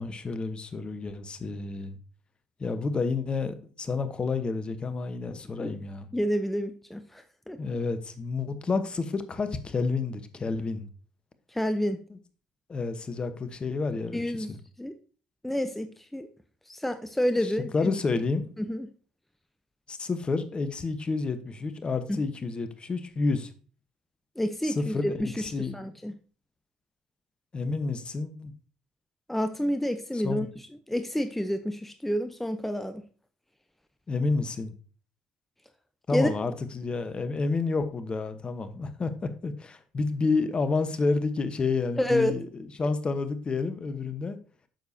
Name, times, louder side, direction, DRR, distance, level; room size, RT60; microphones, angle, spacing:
voice 1, 0.0-2.0 2.6-6.1 7.6-10.9 12.1-12.2 12.7-14.2 14.5-14.6 17.4-18.5 19.9-23.5 24.6-25.9 27.5-28.5 30.1-30.5 34.1-34.7 36.1-44.4, left 4 dB, 35° left, 10 dB, 1.1 m, -30 dB
voice 2, 6.1-7.6 11.5-12.0 14.1-14.5 14.8-14.9 15.4-16.3 16.7-17.9 18.6-18.9 22.1-22.2 24.4-26.1 29.3-33.0 36.1-36.3 42.0-42.3, equal, 5° left, 8 dB, 0.8 m, -29 dB
9.1 x 6.9 x 2.8 m, 0.39 s
hypercardioid pair, 60°, 3 cm